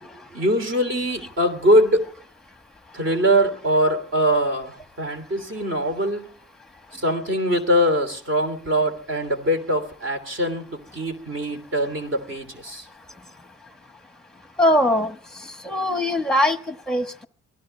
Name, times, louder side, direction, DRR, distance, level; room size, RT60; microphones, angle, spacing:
voice 1, 0.0-2.1 2.9-6.3 6.9-12.9, equal, 40° right, 3.1 m, -22 dB
voice 2, 14.6-15.1 15.6-17.3, left 1 dB, ahead, 1.3 m, -21 dB
24.0 x 17.0 x 3.3 m
cardioid pair, 90°, 30 cm